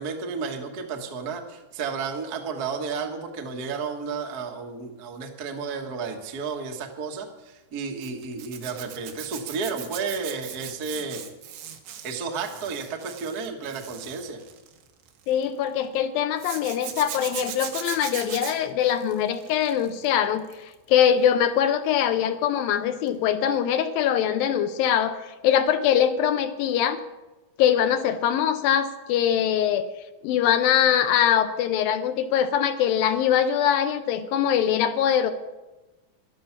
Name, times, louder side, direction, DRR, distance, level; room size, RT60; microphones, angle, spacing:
voice 1, 0.0-11.3 12.0-14.4, right 5 dB, 70° right, 3 dB, 0.8 m, -32 dB
Zipper (clothing), 8.0-15.4 16.4-20.1 20.4-20.8 23.1-23.2 23.5-23.6, right 9 dB, 90° right, 3.3 m, -39 dB
voice 2, 15.3-25.2 25.4-27.0 27.6-29.9 30.2-35.3, left 9 dB, 75° left, 9 dB, 2.4 m, -22 dB
13.0 x 12.0 x 5.8 m, 1.1 s
omnidirectional pair, 4.4 m